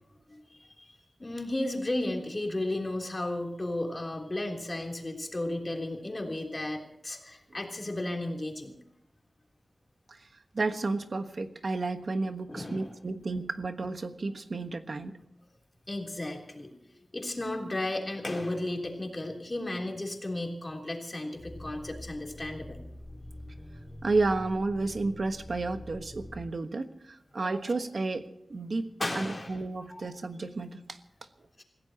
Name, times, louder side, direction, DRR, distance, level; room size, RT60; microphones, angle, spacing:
voice 1, 0.3-8.7 12.5-13.0 15.9-22.8 29.0-29.6 29.9-30.1, left 1 dB, 30° left, 1 dB, 3.4 m, -34 dB
voice 2, 10.5-15.2 24.0-31.0, right 3 dB, 60° right, 8 dB, 1.3 m, -32 dB
sound 1, 21.4-26.4, left 1 dB, 10° left, 4.6 m, -45 dB
27.5 x 16.0 x 3.0 m, 0.84 s
wide cardioid pair, 95°, 0 cm